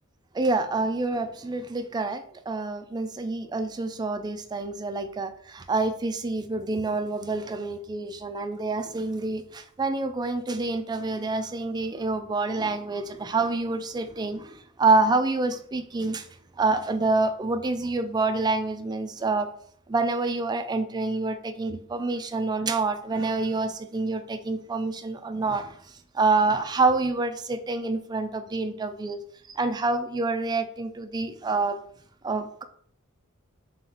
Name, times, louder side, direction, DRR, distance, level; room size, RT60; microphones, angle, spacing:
voice 1, 0.3-16.3 16.6-19.5 19.9-25.8 26.1-29.2 29.6-31.8 32.2-32.6, right 3 dB, 20° right, 9 dB, 0.3 m, -27 dB
3.4 x 2.9 x 3.9 m, 0.62 s
head